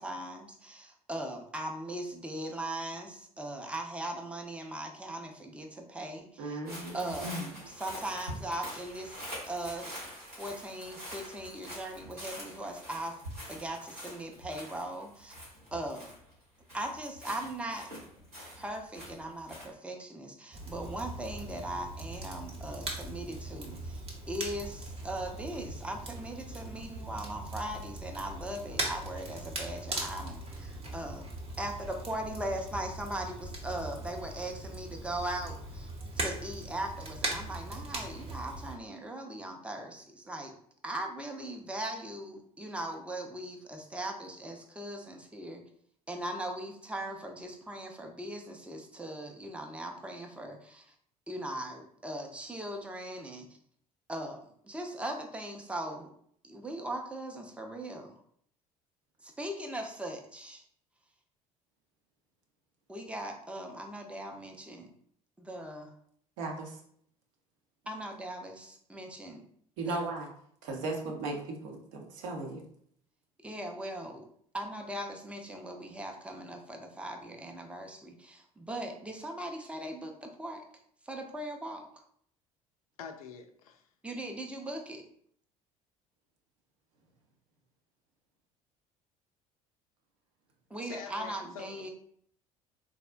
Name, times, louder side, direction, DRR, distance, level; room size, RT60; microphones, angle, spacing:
voice 1, 0.0-6.6 6.9-7.3 7.8-9.9 10.3-13.2 13.5-15.3 15.7-16.1 16.7-17.9 18.5-24.0 24.3-31.3 31.6-35.9 36.2-40.5 40.8-45.6 46.1-50.9 51.3-53.5 54.1-54.4 54.6-56.1 56.4-58.1 59.2-60.6 62.9-64.9 65.4-65.9 67.9-69.4 69.9-70.1 73.4-74.2 74.5-80.6 81.0-81.8 84.0-85.0 90.7-91.9, right 1 dB, 5° right, 0.5 m, -39 dB
voice 2, 6.4-7.4 38.9-39.0 66.4-66.8 69.8-70.3 70.6-72.6, right 2 dB, 60° right, 0.7 m, -37 dB
sound 1, 6.7-16.4 16.7-19.7, equal, 85° right, 1.4 m, -45 dB
Crackle, 20.5-38.7, right 2 dB, 30° right, 0.9 m, -40 dB
voice 3, 83.0-83.9 90.8-91.9, left 6 dB, 70° left, 0.4 m, -45 dB
3.6 x 2.0 x 2.4 m
figure-of-eight pair, 60°, 19 cm